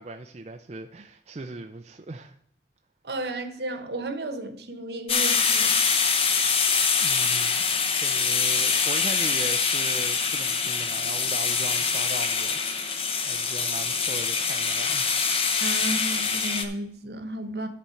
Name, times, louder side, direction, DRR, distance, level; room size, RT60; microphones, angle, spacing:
voice 1, 0.0-2.3 7.0-7.6 7.9-13.0 13.3-15.1, right 2 dB, 35° right, 0.5 m, -39 dB
voice 2, 3.0-5.7 15.6-17.7, right 1 dB, 65° right, 1.1 m, -33 dB
sound 1, 5.1-16.6, left 5 dB, 30° left, 0.9 m, -24 dB
10.5 x 4.3 x 7.0 m
head